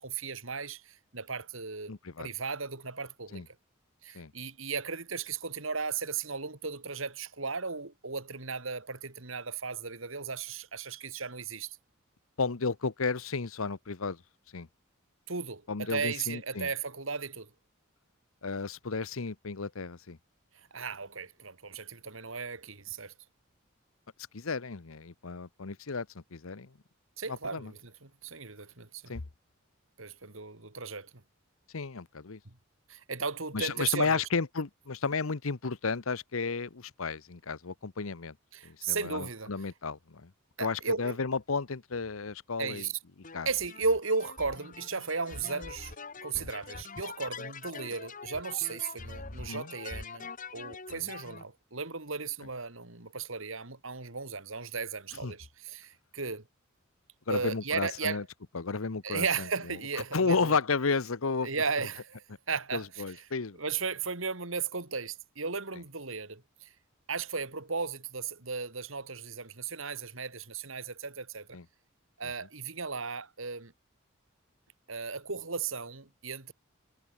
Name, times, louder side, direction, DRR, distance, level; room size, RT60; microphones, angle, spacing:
voice 1, 0.0-3.5 4.0-11.8 15.3-17.5 20.7-23.1 27.2-29.1 30.0-31.1 32.4-32.5 32.9-34.2 38.5-39.5 40.6-41.2 42.6-43.0 43.4-45.9 46.2-56.4 57.3-58.2 59.0-60.6 61.4-63.0 63.6-66.7 67.1-71.6 72.2-73.7 74.9-76.5, right 5 dB, 70° right, 2.8 m, -35 dB
voice 2, 1.9-2.3 3.3-3.5 4.1-4.3 12.4-14.2 14.5-14.7 15.7-16.7 18.4-20.2 24.3-26.7 27.3-27.7 29.1-29.2 31.7-32.4 33.5-38.4 38.6-40.3 40.6-42.9 43.3-43.5 46.3-46.5 49.5-49.7 50.9-51.1 55.2-55.3 57.3-58.2 58.5-59.8 60.1-61.5 62.7-63.6 71.5-71.6 72.2-72.3, left 4 dB, 80° left, 1.0 m, -33 dB
sound 1, 43.2-51.4, left 4 dB, 40° left, 2.1 m, -44 dB
head